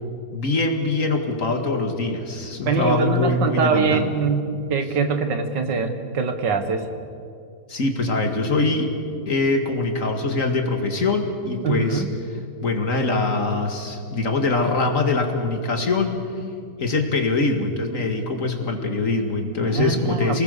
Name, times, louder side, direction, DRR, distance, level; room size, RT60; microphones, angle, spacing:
voice 1, 0.3-4.2 7.7-8.9 9.3-12.0 12.6-16.2 16.8-20.4, left 3 dB, 45° left, 4 dB, 2.3 m, -23 dB
voice 2, 2.7-6.9 11.6-12.1 19.6-20.4, right 5 dB, 75° right, 7 dB, 2.1 m, -23 dB
28.5 x 19.5 x 6.8 m, 2.4 s
omnidirectional pair, 2.0 m